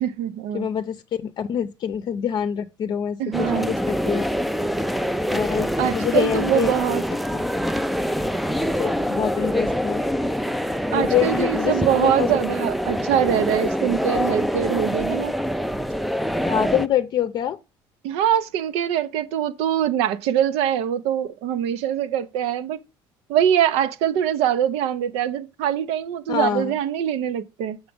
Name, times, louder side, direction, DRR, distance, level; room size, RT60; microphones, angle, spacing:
voice 1, 0.0-0.7 3.2-3.7 5.8-7.0 10.9-15.3 18.0-22.8 23.3-27.8, right 10 dB, 85° right, 0.7 m, -23 dB
voice 2, 0.5-4.3 5.3-6.7 7.3-7.4 8.7-10.0 10.9-12.3 16.5-17.6 26.3-26.7, left 9 dB, 45° left, 0.6 m, -25 dB
sound 1, 3.3-16.9, equal, ahead, 0.3 m, -25 dB
6.5 x 6.0 x 5.1 m
cardioid pair, 145°, 10 cm